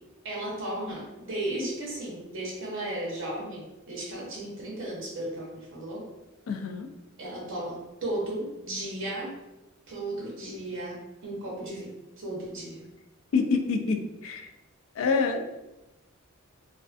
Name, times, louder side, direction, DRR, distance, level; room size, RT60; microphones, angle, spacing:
voice 1, 0.2-6.1 7.2-9.4 9.9-12.8, right 1 dB, 60° right, -3 dB, 0.7 m, -35 dB
voice 2, 6.5-6.9 13.3-14.5 14.9-15.6, left 4 dB, 70° left, 4 dB, 0.3 m, -27 dB
2.4 x 2.3 x 2.4 m, 0.99 s
head